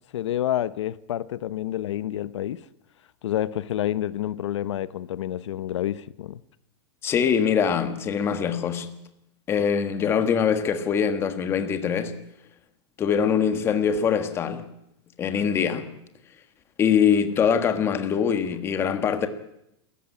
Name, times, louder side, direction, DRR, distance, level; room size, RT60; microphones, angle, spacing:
voice 1, 0.1-2.6 3.2-6.4, left 12 dB, 85° left, 0.9 m, -28 dB
voice 2, 7.0-8.9 9.5-12.1 13.0-14.6 15.2-15.9 16.8-19.3, left 7 dB, 15° left, 1.5 m, -23 dB
27.5 x 14.5 x 8.8 m
supercardioid pair, 175°, 15 cm